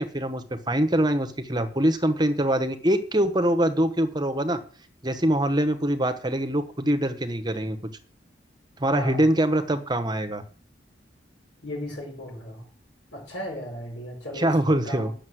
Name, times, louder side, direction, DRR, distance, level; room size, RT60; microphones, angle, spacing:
voice 1, 0.0-4.6 5.0-7.8 8.8-10.4 14.4-15.1, right 1 dB, 25° right, 8 dB, 1.0 m, -24 dB
voice 2, 8.9-9.3 11.6-12.7 13.1-15.1, left 1 dB, 75° left, -5 dB, 5.3 m, -36 dB
9.6 x 6.7 x 7.8 m, 0.43 s
head